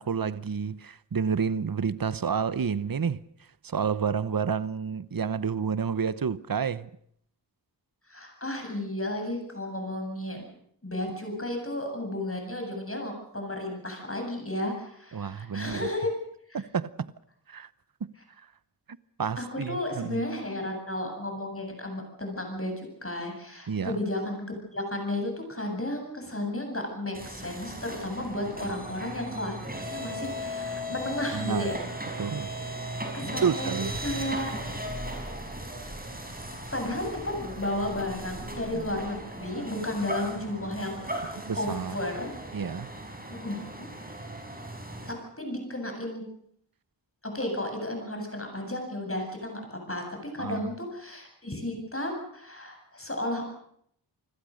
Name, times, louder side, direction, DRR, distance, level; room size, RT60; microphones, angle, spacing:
voice 1, 0.0-3.2 3.6-6.9 15.1-15.9 16.5-17.1 17.5-17.7 18.0-18.1 19.2-20.2 23.7-24.0 28.6-28.7 31.3-31.7 32.2-32.5 33.4-34.0 41.4-42.0 42.5-42.9 50.4-50.7, right 6 dB, 50° right, 0.9 m, -29 dB
voice 2, 8.1-10.5 10.8-16.1 16.5-16.6 19.4-24.4 24.7-31.8 33.1-33.7 34.0-34.5 36.7-42.3 43.4-43.9 45.1-46.2 47.2-50.0 50.3-53.4, left 1 dB, 30° left, 8.0 m, -33 dB
sound 1, 27.1-45.1, equal, 20° right, 5.5 m, -37 dB
28.0 x 21.0 x 6.5 m
wide cardioid pair, 70°, 44 cm